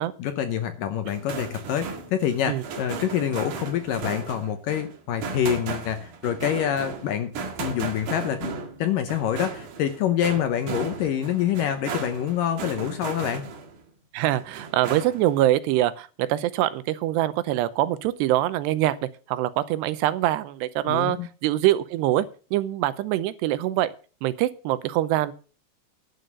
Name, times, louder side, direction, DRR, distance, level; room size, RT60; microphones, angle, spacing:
voice 1, 0.2-7.3 7.6-8.5 8.8-13.4 20.9-21.3, left 9 dB, 70° left, 8 dB, 2.2 m, -26 dB
sound 1, 1.0-13.8 14.2-15.4, right 5 dB, 55° right, 3.1 m, -36 dB
voice 2, 14.1-19.0 19.3-22.3 22.5-23.9 24.2-25.3, right 14 dB, 90° right, 14 dB, 2.9 m, -24 dB
11.0 x 7.8 x 6.7 m, 0.36 s
omnidirectional pair, 4.8 m